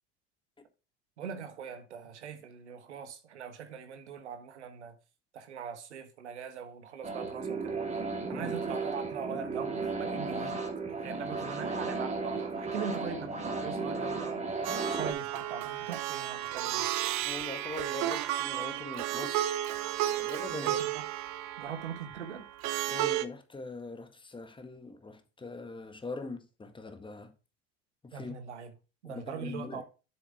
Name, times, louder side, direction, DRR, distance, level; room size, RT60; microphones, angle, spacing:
voice 1, 1.2-5.0 5.3-7.8 8.3-10.6 10.9-14.5 14.9-16.9 20.5-21.0 21.6-22.5 28.1-28.7 29.0-29.8, right 7 dB, 85° right, 1.4 m, -41 dB
sound 1, 7.0-15.1, right 4 dB, 20° right, 2.2 m, -34 dB
Plucked string instrument, 14.6-23.3, right 13 dB, 50° right, 0.9 m, -33 dB
voice 2, 17.2-19.6 20.1-20.8 22.9-27.3 28.0-28.4 29.0-29.8, left 3 dB, 15° left, 1.6 m, -42 dB
7.5 x 7.2 x 3.5 m
hypercardioid pair, 80°, 34 cm